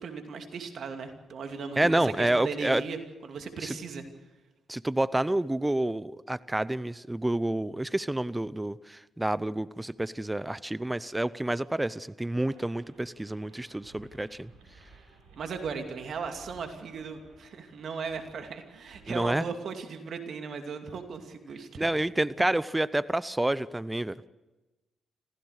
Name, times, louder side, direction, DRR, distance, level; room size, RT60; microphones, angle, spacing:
voice 1, 0.0-4.0 15.4-21.9, right 5 dB, 65° right, 6 dB, 2.6 m, -37 dB
voice 2, 1.8-2.8 3.6-3.7 4.7-14.5 19.1-19.5 21.8-24.1, right 1 dB, 15° right, 18 dB, 0.7 m, -29 dB
sound 1, 12.4-19.4, right 3 dB, 85° right, 5.6 m, -56 dB
25.5 x 16.0 x 6.6 m, 1.1 s
hypercardioid pair, 45°, 0 cm